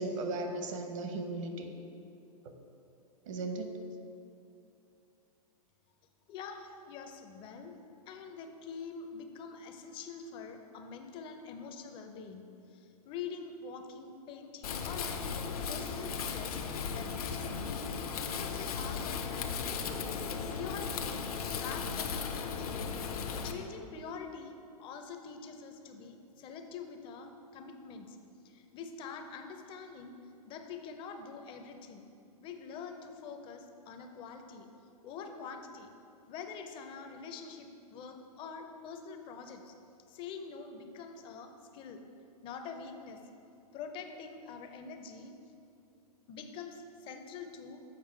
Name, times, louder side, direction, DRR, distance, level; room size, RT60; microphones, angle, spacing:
voice 1, 0.0-1.7 3.3-3.7, right 2 dB, 55° right, 5 dB, 0.9 m, -36 dB
voice 2, 6.3-7.8 8.1-12.4 12.7-16.6 16.9-17.9 18.2-22.9 23.4-28.2 28.4-30.2 30.5-32.0 32.4-34.7 35.0-35.9 36.3-39.7 40.1-42.0 42.4-43.2 43.7-45.4 46.3-47.8, left 5 dB, 25° left, 6 dB, 0.5 m, -45 dB
Wind, 14.6-23.5, left 6 dB, 70° left, 0.7 m, -36 dB
7.4 x 4.6 x 4.6 m, 2.6 s
hypercardioid pair, 125°, 20 cm